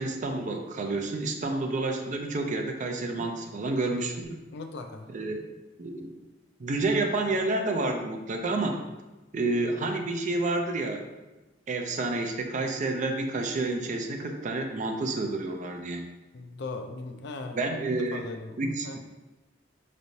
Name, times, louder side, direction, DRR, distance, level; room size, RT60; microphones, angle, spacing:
voice 1, 0.0-4.4 5.1-5.4 5.8-6.1 6.6-8.8 9.3-11.1 11.7-16.0 17.5-18.3 18.6-19.0, right 2 dB, 40° right, 4 dB, 0.4 m, -29 dB
voice 2, 4.5-5.1 16.3-17.7 18.1-19.0, left 3 dB, 65° left, 6 dB, 0.4 m, -39 dB
5.3 x 3.1 x 2.7 m, 1.1 s
head